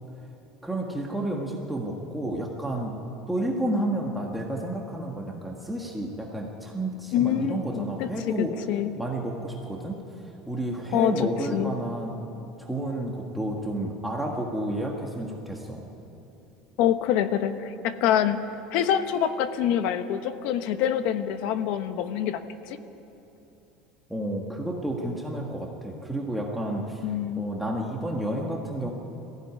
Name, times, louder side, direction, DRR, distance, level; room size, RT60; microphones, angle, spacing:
voice 1, 0.6-3.0 3.3-8.6 9.0-12.1 12.6-15.8 24.1-27.0 27.4-28.9, right 1 dB, 5° right, -1 dB, 1.6 m, -31 dB
voice 2, 7.1-8.9 10.9-11.1 11.5-11.7 16.8-18.4 18.7-22.4 22.7-22.8 27.0-27.4, left 10 dB, 60° left, 10 dB, 1.2 m, -26 dB
22.0 x 15.5 x 9.6 m, 3.0 s
cardioid pair, 160°, 2 cm